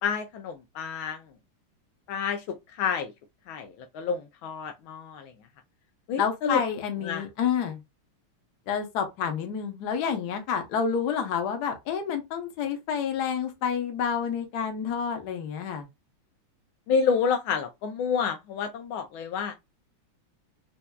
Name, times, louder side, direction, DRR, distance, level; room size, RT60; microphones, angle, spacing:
voice 1, 0.0-1.2 2.1-2.4 2.8-3.1 3.5-5.3 6.1-6.6 7.0-7.2 16.9-19.5, left 6 dB, 80° left, 1.3 m, -29 dB
voice 2, 6.2-7.8 8.7-15.9, left 7 dB, 60° left, 1.2 m, -29 dB
4.4 x 2.6 x 2.2 m
omnidirectional pair, 2.3 m